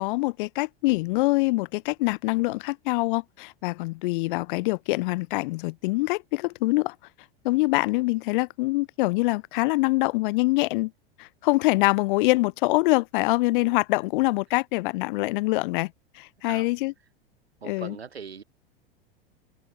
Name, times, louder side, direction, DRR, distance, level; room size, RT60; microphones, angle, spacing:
voice 1, 0.0-6.9 7.4-10.9 11.2-15.9 16.2-16.9 17.6-17.9, left 22 dB, 55° left, 0.8 m, -24 dB
voice 2, 16.4-16.7 17.6-18.4, right 6 dB, 90° right, 2.0 m, -41 dB
hypercardioid pair, 90°, 31 cm